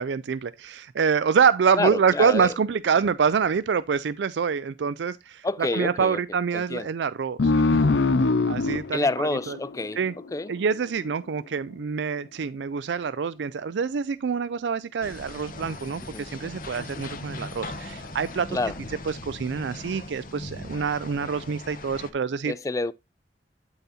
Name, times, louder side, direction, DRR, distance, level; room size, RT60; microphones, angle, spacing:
voice 1, 0.0-7.7 8.5-9.6 10.0-10.1 10.5-18.6 19.1-22.5, right 6 dB, 80° right, 0.4 m, -26 dB
voice 2, 1.7-2.5 5.4-6.2 6.5-6.9 8.9-10.0 10.3-10.5 16.1-16.3 18.5-18.7 22.5-22.9, left 3 dB, 20° left, 0.4 m, -28 dB
sound 1, 7.4-10.5, left 3 dB, 85° left, 0.6 m, -23 dB
sound 2, 15.0-22.1, left 2 dB, 50° left, 1.2 m, -39 dB
11.5 x 4.2 x 4.1 m
head